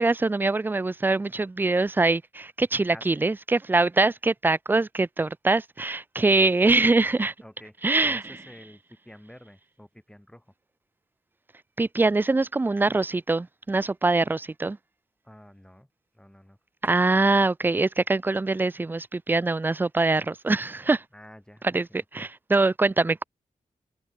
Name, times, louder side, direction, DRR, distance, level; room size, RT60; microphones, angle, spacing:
voice 1, 0.0-7.3 7.8-8.2 11.8-14.8 16.8-21.0 21.6-23.2, right 3 dB, 15° right, 0.3 m, -23 dB
voice 2, 2.9-3.3 7.4-10.5 15.2-15.9 16.1-16.6 21.1-22.3, equal, 5° left, 3.4 m, -49 dB
wide cardioid pair, 105°, 14 cm